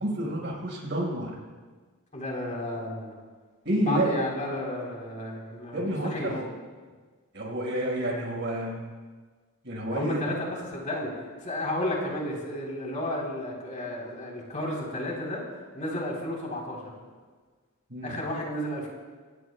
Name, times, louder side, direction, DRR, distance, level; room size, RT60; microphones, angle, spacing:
voice 1, 0.0-1.3 3.6-4.3 5.7-6.5 7.3-8.8 9.6-10.2 17.9-18.2, right 1 dB, 55° right, -2 dB, 5.1 m, -29 dB
voice 2, 2.1-3.1 3.8-6.4 9.9-11.1 11.4-15.4 15.7-16.8 18.0-18.9, left 1 dB, 35° left, -2 dB, 3.8 m, -32 dB
25.0 x 18.5 x 2.3 m, 1.4 s
head